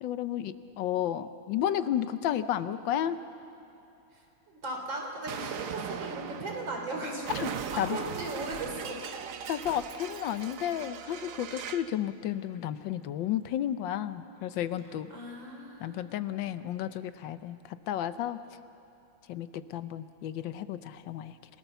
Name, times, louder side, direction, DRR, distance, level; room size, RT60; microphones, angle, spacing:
voice 1, 0.0-3.2 7.3-7.5 7.8-8.0 9.5-15.1 15.8-18.4 19.3-21.3, left 11 dB, 80° left, 12 dB, 1.4 m, -32 dB
voice 2, 4.1-9.1 14.8-16.3, right 2 dB, 80° right, 1 dB, 4.3 m, -38 dB
Explosion, 5.3-11.9, right 8 dB, 60° right, 0.9 m, -39 dB
28.0 x 17.5 x 6.9 m, 2.9 s
omnidirectional pair, 2.0 m